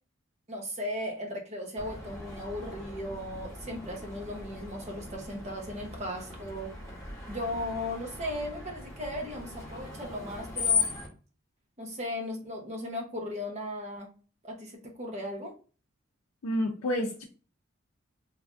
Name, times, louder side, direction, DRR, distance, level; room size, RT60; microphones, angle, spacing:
voice 1, 0.5-6.7 7.3-10.9 11.8-14.1 14.4-15.5, left 1 dB, 30° right, 1 dB, 0.7 m, -37 dB
Screech, 1.8-11.1, left 5 dB, 15° left, 0.9 m, -37 dB
voice 2, 16.4-17.2, equal, 75° left, 0 dB, 0.5 m, -29 dB
3.2 x 2.4 x 2.4 m, 0.37 s
head